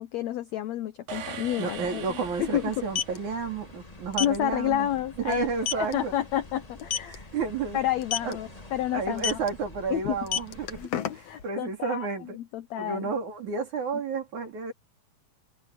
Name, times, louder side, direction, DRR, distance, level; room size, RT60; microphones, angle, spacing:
voice 1, 0.0-2.0 2.4-2.8 4.2-5.5 5.8-7.3 7.7-9.4 9.9-10.2 10.8-13.1, left 12 dB, 85° left, 1.5 m, -30 dB
sound 1, 1.1-1.2 1.5-1.7 2.7-3.2 4.1-4.4 4.8-5.0 5.3-5.4 5.7-5.9 6.8-7.2 8.0-8.3 9.2-9.5 10.1-11.4, left 9 dB, 60° left, 1.8 m, -29 dB
sound 2, 1.1-3.3, right 7 dB, 75° right, 4.1 m, -41 dB
voice 2, 1.6-4.9 5.2-6.1 7.1-7.8 8.2-8.4 8.9-10.8 11.4-12.4 12.8-14.7, right 5 dB, 55° right, 4.9 m, -31 dB
sound 3, 1.7-10.9, left 2 dB, 25° left, 0.7 m, -47 dB
omnidirectional pair, 4.2 m